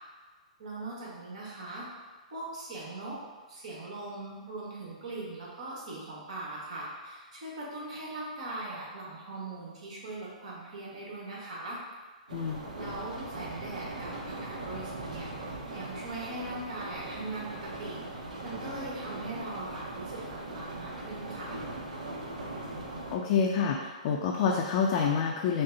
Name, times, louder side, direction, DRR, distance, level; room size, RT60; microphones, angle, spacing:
voice 1, 0.6-1.9 2.3-3.2 3.5-11.8 12.7-21.6, right 2 dB, 65° right, -5 dB, 1.2 m, -40 dB
voice 2, 12.3-12.6 23.1-25.6, left 6 dB, 50° left, -1 dB, 0.4 m, -27 dB
sound 1, 12.3-23.2, right 2 dB, 80° right, 0.6 m, -40 dB
5.1 x 2.0 x 2.6 m, 1.4 s
hypercardioid pair, 125°, 4 cm